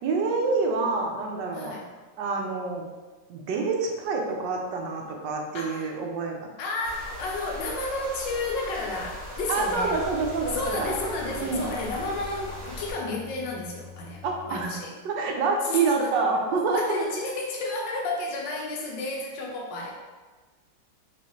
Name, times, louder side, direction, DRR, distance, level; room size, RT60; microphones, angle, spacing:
voice 1, 0.0-1.8 2.2-2.8 3.3-6.5 9.5-10.9 11.4-11.7 14.2-14.8 15.0-17.2, right 4 dB, 75° right, 1 dB, 1.2 m, -27 dB
voice 2, 1.5-1.9 5.5-6.0 6.6-10.0 10.4-14.9 15.6-16.2 16.7-20.0, left 2 dB, 80° left, -1 dB, 1.4 m, -32 dB
sound 1, 6.8-12.9, left 1 dB, 20° left, 1.4 m, -39 dB
sound 2, 9.7-14.6, left 7 dB, 55° right, 1.0 m, -46 dB
4.6 x 3.0 x 3.0 m, 1.3 s
omnidirectional pair, 2.0 m